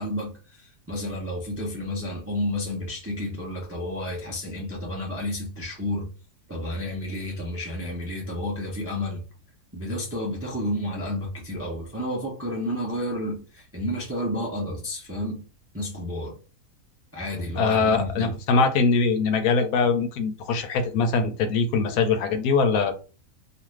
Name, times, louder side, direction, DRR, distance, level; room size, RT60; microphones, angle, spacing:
voice 1, 0.0-6.1 6.5-9.2 9.7-15.5 15.7-16.4 17.1-18.3, left 1 dB, 20° right, 0.4 m, -31 dB
voice 2, 17.6-22.9, left 4 dB, 80° left, 1.0 m, -22 dB
2.5 x 2.5 x 3.1 m
omnidirectional pair, 1.6 m